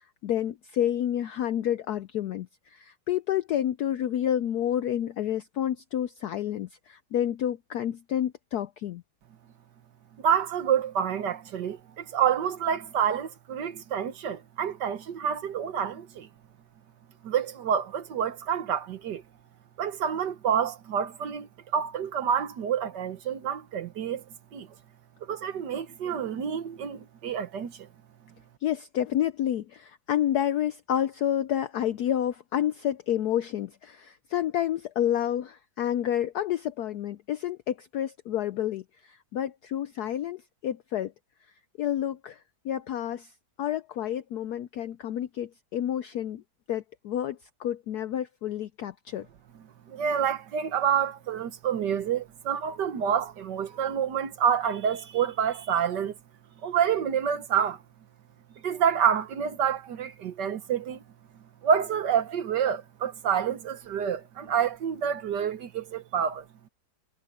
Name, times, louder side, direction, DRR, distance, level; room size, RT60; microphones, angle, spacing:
voice 1, 0.2-9.0 28.6-41.1 41.8-43.3 43.6-46.4 46.7-49.3, left 11 dB, 75° left, 0.9 m, -29 dB
voice 2, 10.2-16.3 17.2-19.2 19.8-24.2 24.5-24.7 25.2-27.9 49.9-56.2 56.6-57.8 58.6-61.0 61.6-66.7, right 8 dB, 60° right, 1.6 m, -28 dB
omnidirectional pair, 2.2 m